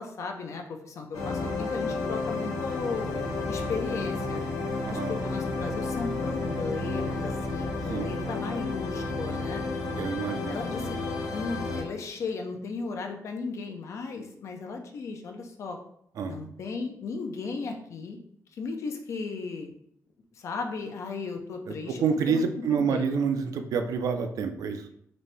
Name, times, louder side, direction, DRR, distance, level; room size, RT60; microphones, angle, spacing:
voice 1, 0.0-3.1 3.5-4.4 4.9-9.6 10.5-11.0 11.3-15.8 16.3-18.2 18.5-19.7 20.4-22.4 22.7-23.2, left 4 dB, 55° left, 4 dB, 0.5 m, -36 dB
sound 1, 1.1-11.8, left 3 dB, 80° left, 1.0 m, -31 dB
voice 2, 10.0-10.6 16.2-16.4 21.7-24.9, right 6 dB, 75° right, 7 dB, 0.4 m, -28 dB
4.0 x 2.6 x 3.3 m, 0.69 s
wide cardioid pair, 180°, 6 cm